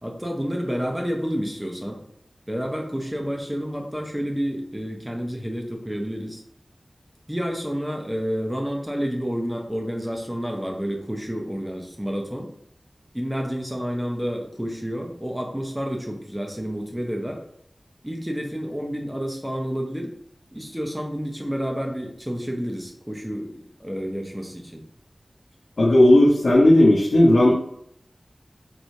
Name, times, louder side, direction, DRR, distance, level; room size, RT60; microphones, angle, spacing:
voice 1, 0.0-2.0 2.5-6.4 7.3-12.5 13.1-17.4 18.0-20.1 20.5-24.8, equal, 10° right, 1 dB, 0.8 m, -29 dB
voice 2, 25.8-27.6, left 1 dB, 80° left, -5 dB, 0.8 m, -15 dB
4.6 x 3.1 x 2.7 m, 0.70 s
wide cardioid pair, 70°, 0 cm